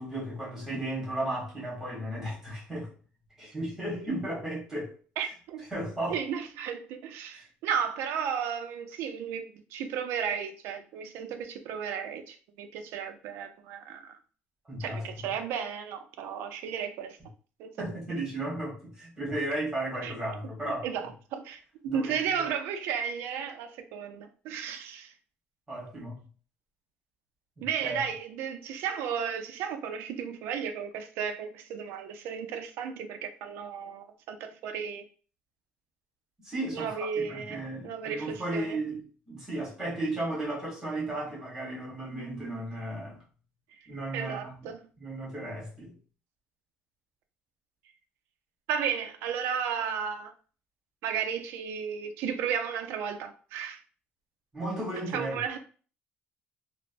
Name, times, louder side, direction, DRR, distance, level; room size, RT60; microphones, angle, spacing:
voice 1, 0.0-2.9 3.4-4.9 5.7-6.2 7.3-7.4 14.7-15.1 17.8-20.9 21.9-22.5 25.7-26.2 27.6-28.0 36.4-39.0 39.3-43.2 43.9-44.5 45.0-45.9 54.5-55.4, right 1 dB, 10° right, 1.3 m, -34 dB
voice 2, 5.2-5.6 6.1-14.2 14.8-17.2 17.6-17.7 20.0-20.1 20.6-21.6 21.9-25.1 27.6-35.0 36.7-38.8 44.1-44.8 48.7-50.3 51.0-53.8 55.1-55.6, right 7 dB, 80° right, 0.4 m, -34 dB
3.1 x 2.1 x 2.5 m
cardioid pair, 175°, 4 cm